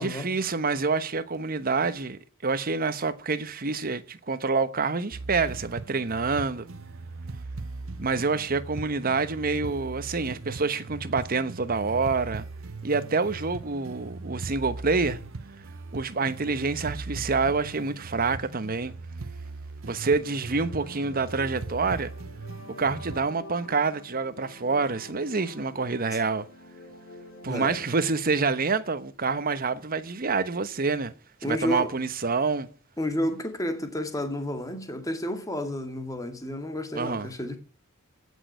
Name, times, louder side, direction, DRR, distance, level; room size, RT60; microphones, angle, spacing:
voice 1, 0.0-6.7 8.0-12.5 12.8-15.2 15.9-18.9 19.8-22.1 22.7-26.5 27.4-31.1 31.4-32.7 36.9-37.3, right 4 dB, 45° right, 1.0 m, -27 dB
sound 1, 5.1-23.2, right 3 dB, 80° right, 0.9 m, -39 dB
sound 2, 20.2-28.1, left 1 dB, 70° left, 3.4 m, -47 dB
voice 2, 27.5-27.8 31.4-32.0 33.0-37.6, left 1 dB, 15° left, 2.2 m, -31 dB
16.0 x 6.5 x 9.2 m
head